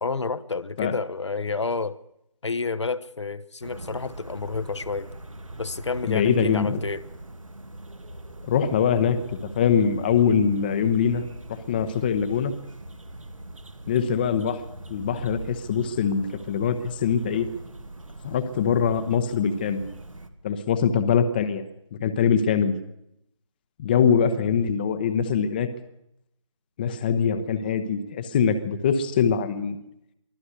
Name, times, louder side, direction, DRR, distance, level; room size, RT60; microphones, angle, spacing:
voice 1, 0.0-2.0 2.4-5.1 5.6-7.0, left 4 dB, 60° left, 12 dB, 1.1 m, -29 dB
sound 1, 3.6-20.3, right 2 dB, 80° right, 2.2 m, -41 dB
voice 2, 6.1-6.8 8.4-11.2 11.5-12.5 13.9-14.6 14.9-17.5 18.2-19.9 20.4-21.6 21.9-22.7 23.8-25.7 26.8-29.8, left 7 dB, 20° left, 10 dB, 0.9 m, -23 dB
23.5 x 15.5 x 8.2 m, 0.78 s
figure-of-eight pair, 155°, 17 cm